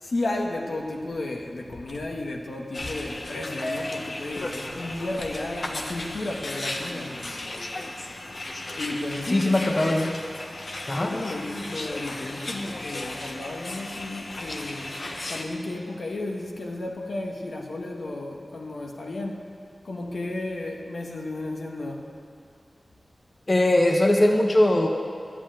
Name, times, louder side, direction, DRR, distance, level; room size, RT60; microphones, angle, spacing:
voice 1, 0.0-7.2 8.8-9.9 11.0-15.0 15.3-19.5 19.8-22.1, left 2 dB, 80° left, 0 dB, 1.4 m, -33 dB
sound 1, 2.7-15.4, left 2 dB, 60° left, 1.1 m, -35 dB
voice 2, 9.3-10.1 10.9-11.1 23.5-24.9, left 1 dB, 35° left, 2 dB, 1.1 m, -20 dB
11.5 x 8.3 x 9.0 m, 2.3 s
wide cardioid pair, 75°, 0 cm